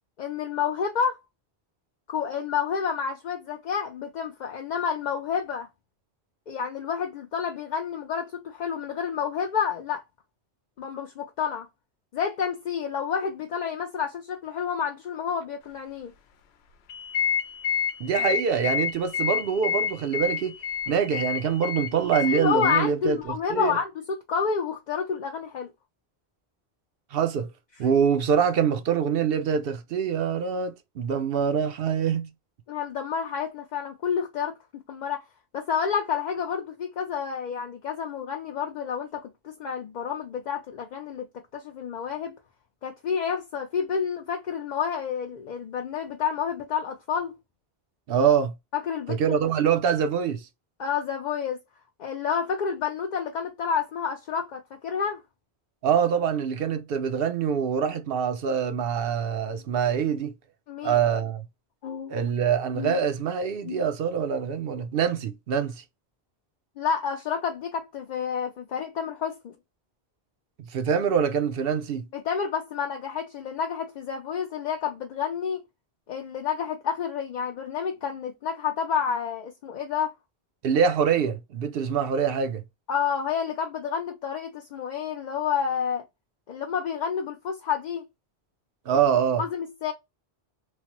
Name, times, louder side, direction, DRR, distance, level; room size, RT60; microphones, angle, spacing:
voice 1, 0.2-1.2 2.1-5.7 6.5-10.0 10.8-11.7 12.1-16.1 22.3-23.9 24.3-25.7 32.7-34.6 34.9-35.2 35.5-41.3 41.5-42.4 42.8-47.3 48.7-49.4 50.8-51.6 52.0-55.2 60.7-61.0 61.8-62.1 62.8-63.0 63.6-63.8 66.8-69.5 72.1-75.6 76.1-80.1 82.9-86.0 86.5-88.1 89.4-89.9, left 7 dB, 55° left, 0.6 m, -29 dB
sound 1, 16.9-22.8, left 8 dB, 80° left, 0.8 m, -29 dB
voice 2, 18.0-20.5 20.9-23.8 27.1-27.5 27.8-32.3 48.1-48.5 49.1-50.5 55.8-60.3 60.8-61.5 62.1-65.8 70.6-72.0 80.6-82.6 88.9-89.4, right 7 dB, 70° right, 0.7 m, -25 dB
3.2 x 2.0 x 2.8 m
omnidirectional pair, 1.1 m